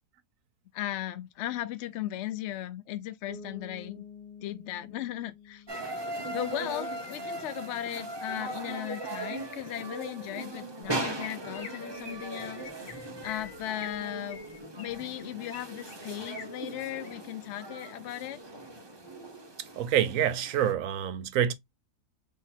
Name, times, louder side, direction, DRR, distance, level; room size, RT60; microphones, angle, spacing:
voice 1, 0.7-4.0 4.4-5.6 6.3-14.4 14.8-18.4, left 13 dB, 70° left, 0.6 m, -37 dB
Bass guitar, 3.3-7.0, left 5 dB, 30° left, 1.5 m, -49 dB
sound 1, 5.7-20.7, right 1 dB, 25° right, 0.5 m, -39 dB
Chirp tweet, 10.8-10.9 11.2-11.7 12.0-12.2 12.6-12.9 13.2-14.0 14.3-15.6 15.9-16.4 16.9-17.1 17.6-17.9, left 6 dB, 55° left, 1.7 m, -45 dB
voice 2, 19.8-21.5, right 10 dB, 65° right, 0.9 m, -27 dB
3.9 x 3.0 x 4.3 m
omnidirectional pair, 1.7 m